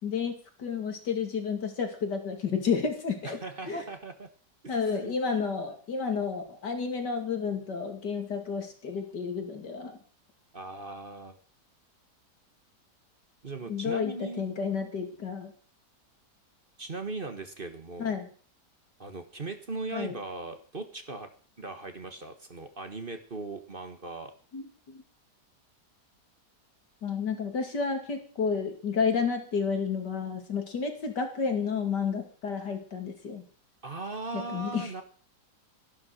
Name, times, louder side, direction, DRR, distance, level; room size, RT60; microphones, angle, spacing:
voice 1, 0.0-3.4 3.7-3.8 4.7-10.0 13.7-15.5 18.0-18.3 19.9-20.1 24.5-25.0 27.0-33.4 34.3-34.9, left 5 dB, 75° left, 5 dB, 3.1 m, -31 dB
voice 2, 3.2-4.3 4.6-5.1 10.5-11.4 13.4-14.4 16.8-18.1 19.0-21.3 21.6-24.3 33.8-35.0, right 3 dB, 35° right, 8 dB, 1.5 m, -38 dB
13.0 x 11.5 x 6.4 m, 0.42 s
omnidirectional pair, 1.8 m